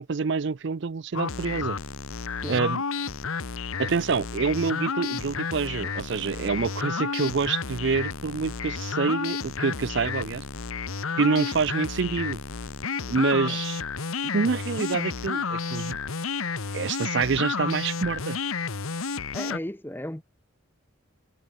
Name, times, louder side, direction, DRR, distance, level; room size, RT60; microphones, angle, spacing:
voice 1, 0.0-1.8 2.5-2.8 3.8-10.4 11.2-12.4 13.1-13.8 14.3-16.0 16.7-18.4, right 5 dB, 55° right, 0.5 m, -27 dB
sound 1, 1.1-19.6, left 5 dB, 80° left, 1.2 m, -31 dB
voice 2, 19.3-20.2, left 1 dB, 10° left, 1.1 m, -35 dB
head